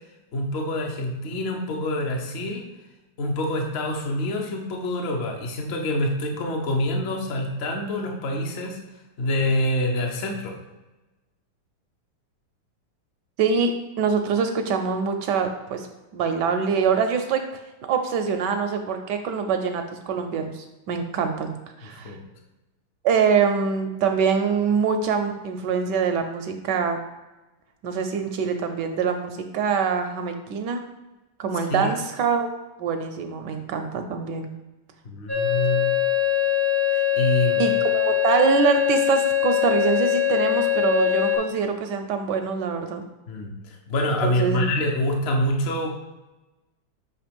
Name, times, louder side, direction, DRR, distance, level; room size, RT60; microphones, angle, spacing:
voice 1, 0.3-2.6 3.2-8.8 9.2-10.5 21.8-22.2 31.7-31.9 35.0-35.9 36.9-37.6 43.3-45.9, left 1 dB, 65° left, 1 dB, 0.6 m, -26 dB
voice 2, 13.4-15.9 16.1-17.4 17.8-22.2 23.0-27.0 27.8-30.8 31.4-32.5 32.8-34.5 37.6-43.0 44.2-44.6, right 6 dB, 75° right, 6 dB, 1.0 m, -24 dB
sound 1, 35.3-41.4, left 11 dB, 30° right, 0.4 m, -22 dB
7.1 x 2.9 x 5.2 m, 1.1 s
omnidirectional pair, 2.3 m